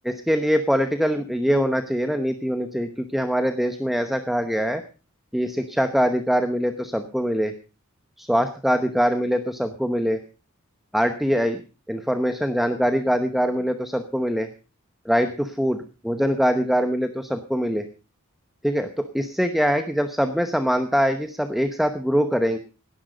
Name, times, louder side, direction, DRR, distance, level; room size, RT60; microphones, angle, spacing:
voice 1, 0.0-4.8 5.3-7.5 8.2-10.2 10.9-11.6 11.9-14.5 15.0-17.8 18.6-22.6, equal, ahead, 8 dB, 0.9 m, -23 dB
18.0 x 10.5 x 5.0 m, 0.34 s
head